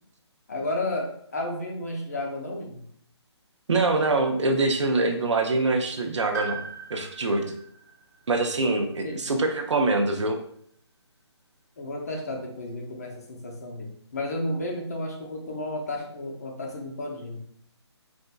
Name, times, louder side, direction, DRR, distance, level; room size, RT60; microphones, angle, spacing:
voice 1, 0.5-2.9 9.0-9.2 11.8-17.4, left 1 dB, 35° left, 1 dB, 0.6 m, -32 dB
voice 2, 3.7-6.6 6.9-7.5 8.3-10.4, right 2 dB, 85° right, 4 dB, 0.7 m, -24 dB
Piano, 6.3-10.2 10.5-10.6 11.7-11.8, right 5 dB, 35° right, 0.7 m, -40 dB
4.2 x 2.5 x 2.2 m, 0.65 s
hypercardioid pair, 170°, 15 cm